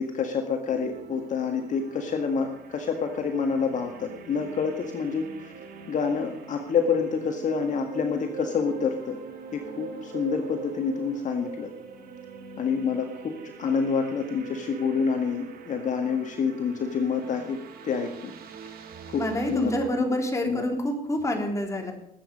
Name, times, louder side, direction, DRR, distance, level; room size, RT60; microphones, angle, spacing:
voice 1, 0.0-5.5 5.9-9.2 9.5-11.7 12.6-17.6 17.8-18.3 19.1-19.2 19.5-19.7 20.0-20.1 20.5-20.7, left 5 dB, 45° left, 4 dB, 1.7 m, -27 dB
sound 1, 0.7-19.9, right 5 dB, 60° right, 2.4 m, -43 dB
voice 2, 19.2-21.9, equal, 20° left, 3 dB, 3.3 m, -27 dB
20.5 x 8.7 x 5.3 m, 0.79 s
cardioid pair, 110°, 17 cm